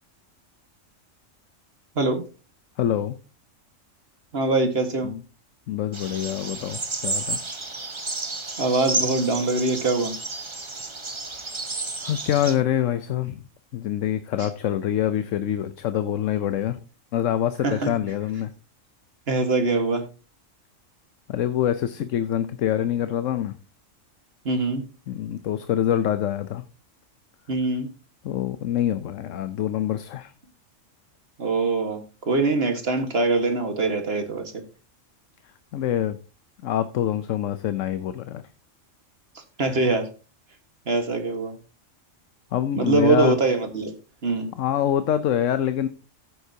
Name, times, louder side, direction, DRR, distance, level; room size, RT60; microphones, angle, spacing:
voice 1, 2.8-3.2 5.0-5.2 5.7-7.4 12.0-13.4 13.7-16.8 17.1-18.5 21.3-23.6 25.1-26.6 28.2-30.3 35.7-36.2 36.6-38.4 42.5-43.4 44.5-45.9, left 11 dB, 75° left, 1.1 m, -25 dB
voice 2, 4.3-5.1 8.6-10.1 14.4-14.5 17.6-17.9 19.3-20.0 24.5-24.8 27.5-27.9 31.4-32.0 32.3-34.5 39.6-40.1 40.9-41.6 42.7-43.9 44.2-44.5, right 3 dB, 50° right, 1.8 m, -23 dB
sound 1, 5.9-12.5, right 3 dB, 25° right, 1.0 m, -31 dB
15.0 x 8.1 x 2.8 m
omnidirectional pair, 1.3 m